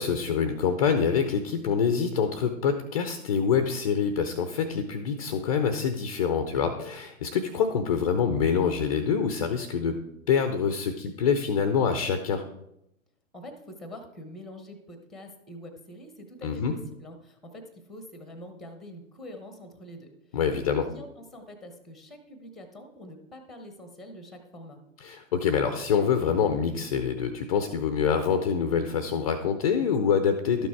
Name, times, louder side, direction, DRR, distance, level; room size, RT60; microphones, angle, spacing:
voice 1, 0.0-10.0 10.3-12.4 16.4-16.7 20.3-20.9 25.0-30.7, left 6 dB, 25° left, 8 dB, 0.5 m, -26 dB
voice 2, 13.3-24.8, left 1 dB, ahead, 6 dB, 0.8 m, -45 dB
12.0 x 6.1 x 4.5 m, 0.83 s
hypercardioid pair, 135°, 42 cm